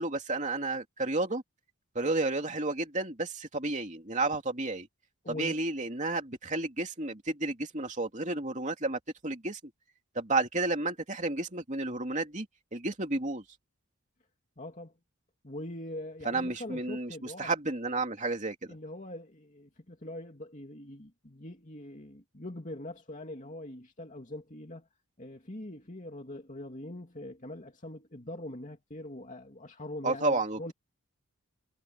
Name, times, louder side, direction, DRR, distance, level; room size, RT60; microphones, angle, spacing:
voice 1, 0.0-1.4 1.9-4.9 5.3-9.6 10.1-12.5 12.7-13.4 16.2-18.5 30.0-30.7, right 2 dB, 35° right, 2.9 m, -31 dB
voice 2, 5.2-5.6 14.6-14.9 15.4-17.5 18.7-24.9 25.2-30.7, left 1 dB, 35° left, 2.6 m, -43 dB
head